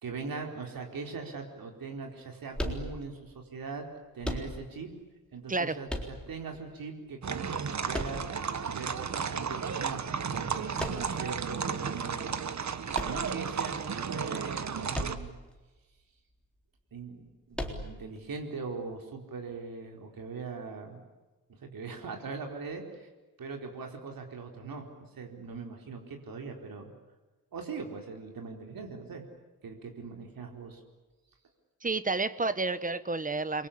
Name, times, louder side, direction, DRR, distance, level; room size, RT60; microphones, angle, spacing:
voice 1, 0.0-3.9 4.1-4.9 5.3-8.2 8.7-12.4 13.0-15.4 16.9-21.0 21.5-23.1 23.4-26.9 27.5-29.2 29.6-30.8, right 4 dB, 80° right, 3 dB, 4.4 m, -41 dB
sound 1, 2.5-3.3 4.2-4.9 5.9-6.6 7.9-8.7 10.8-11.3 12.9-13.8 14.9-15.5 15.8-15.9 17.5-18.2, left 1 dB, 5° left, 3.9 m, -36 dB
sound 2, 7.2-15.2, right 6 dB, 55° right, 1.5 m, -33 dB
voice 2, 31.8-33.7, right 3 dB, 25° right, 14 dB, 1.2 m, -30 dB
29.5 x 23.0 x 8.7 m, 1.2 s
wide cardioid pair, 140°, 34 cm